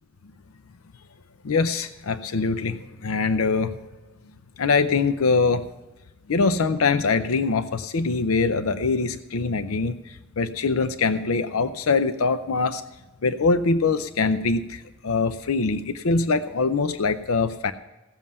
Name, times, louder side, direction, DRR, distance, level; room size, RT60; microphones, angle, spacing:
voice 1, 1.4-3.8 4.6-5.6 6.3-12.8 13.2-17.7, left 4 dB, 90° left, 11 dB, 0.6 m, -23 dB
16.0 x 7.4 x 5.5 m, 1.1 s
head